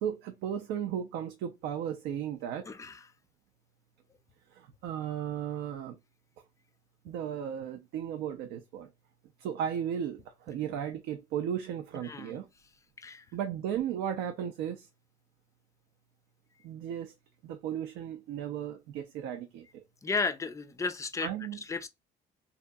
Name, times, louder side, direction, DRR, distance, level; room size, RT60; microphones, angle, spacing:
voice 1, 0.0-2.7 4.5-6.0 7.0-8.9 9.4-12.5 13.3-14.9 16.6-17.1 17.4-19.8 21.2-21.6, right 9 dB, 85° right, 0.5 m, -35 dB
voice 2, 2.7-3.0 12.1-12.4 13.0-13.2 20.0-21.3 21.7-21.9, left 4 dB, 20° left, 0.4 m, -33 dB
2.8 x 2.6 x 2.2 m
cardioid pair, 110°, 17 cm